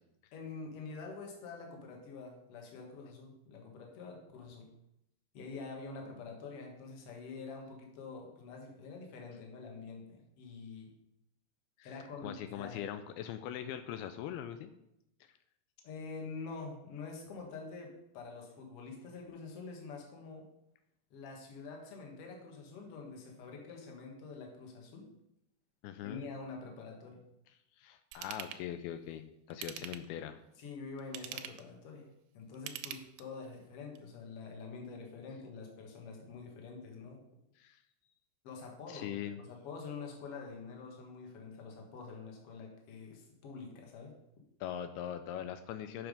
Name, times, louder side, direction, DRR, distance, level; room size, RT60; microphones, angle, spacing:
voice 1, 0.3-4.7 5.3-10.9 11.8-12.8 15.8-20.5 21.1-25.1 26.0-27.2 30.6-32.1 32.3-37.2 38.4-44.1, left 4 dB, 50° left, 1 dB, 1.9 m, -46 dB
voice 2, 12.2-14.7 15.2-15.3 25.8-26.3 27.8-30.4 37.6-37.8 38.9-39.4 44.6-46.1, left 10 dB, 85° left, 9 dB, 2.4 m, -41 dB
Ratchet pawl / Tools, 28.1-28.6 29.5-30.2 31.0-31.7 32.5-33.4 33.9-34.0, right 11 dB, 80° right, 2.2 m, -44 dB
8.3 x 6.0 x 5.3 m, 0.82 s
omnidirectional pair, 4.5 m